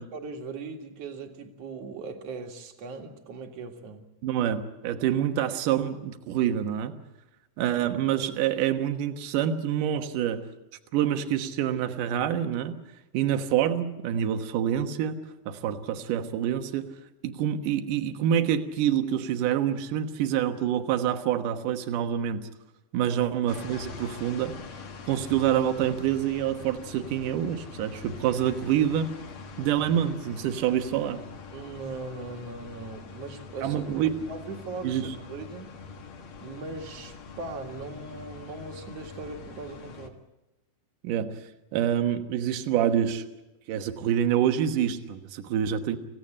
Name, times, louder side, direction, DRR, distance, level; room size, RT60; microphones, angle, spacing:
voice 1, 0.0-4.1 23.1-23.2 31.5-33.9 34.3-35.7 36.4-40.2, right 3 dB, 45° right, 4 dB, 2.3 m, -39 dB
voice 2, 4.2-7.0 7.6-10.5 10.9-12.8 13.1-15.2 15.5-16.9 17.2-22.4 22.9-24.5 25.1-29.1 29.6-31.2 33.6-34.2 34.8-35.1 41.0-41.4 41.7-43.2 43.7-46.0, right 10 dB, 65° right, 7 dB, 2.4 m, -26 dB
sound 1, 23.5-40.1, left 4 dB, 65° left, 1.3 m, -44 dB
27.0 x 16.0 x 8.7 m, 1.0 s
omnidirectional pair, 4.9 m